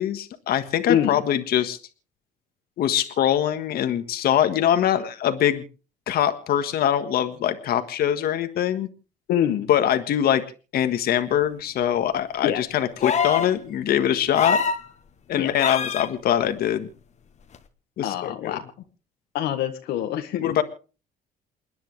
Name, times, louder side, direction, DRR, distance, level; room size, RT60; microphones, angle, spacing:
voice 1, 0.0-1.8 2.8-5.6 6.1-8.9 9.7-10.4 10.7-14.6 15.3-16.9 18.0-18.6 20.4-20.6, left 10 dB, 65° left, 8 dB, 1.6 m, -23 dB
voice 2, 0.9-1.2 9.3-9.7 12.4-12.6 15.4-15.5 18.0-18.6 19.3-20.6, left 10 dB, 80° left, 6 dB, 1.6 m, -25 dB
sound 1, 13.0-13.5 14.3-14.8 15.6-16.1 17.5-17.6, left 6 dB, 45° left, 1.5 m, -24 dB
28.5 x 10.5 x 3.3 m, 0.35 s
cardioid pair, 110°, 17 cm